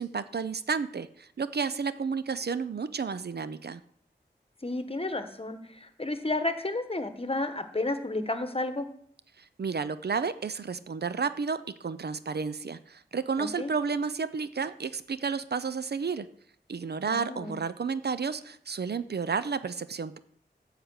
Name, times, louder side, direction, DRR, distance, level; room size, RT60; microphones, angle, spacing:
voice 1, 0.0-3.8 9.6-16.3 16.7-20.2, right 5 dB, 60° right, 14 dB, 0.5 m, -31 dB
voice 2, 4.6-8.9 13.4-13.7 17.1-17.6, left 2 dB, 30° left, 9 dB, 1.1 m, -32 dB
12.5 x 4.9 x 8.0 m, 0.66 s
wide cardioid pair, 70°, 19 cm